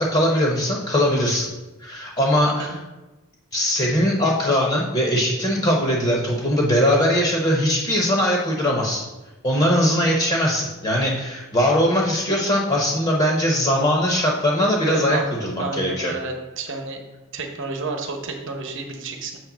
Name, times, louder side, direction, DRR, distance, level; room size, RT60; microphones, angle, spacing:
voice 1, 0.0-1.5 1.8-2.7 3.5-9.0 9.4-16.1, equal, 25° left, -1 dB, 0.9 m, -20 dB
voice 2, 14.8-17.0 17.3-19.4, right 3 dB, 60° right, 3 dB, 0.9 m, -30 dB
7.3 x 3.2 x 5.9 m, 1.1 s
head